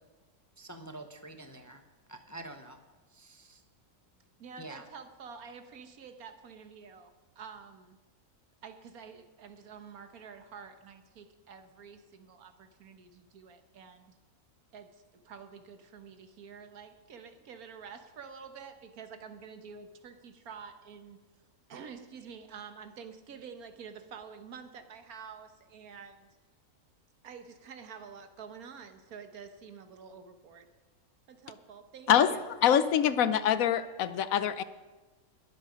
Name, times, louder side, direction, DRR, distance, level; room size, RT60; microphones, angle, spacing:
voice 1, 0.6-1.8 2.1-2.8 3.1-3.6 4.6-4.8, right 2 dB, 20° left, 7 dB, 0.5 m, -46 dB
voice 2, 4.4-8.0 8.6-14.1 14.7-21.2 21.7-26.4 27.2-30.7 31.3-32.5, right 6 dB, 80° right, 8 dB, 1.6 m, -48 dB
voice 3, 32.6-34.6, left 9 dB, 75° left, 14 dB, 1.0 m, -24 dB
21.0 x 7.5 x 5.1 m, 1.2 s
omnidirectional pair, 1.5 m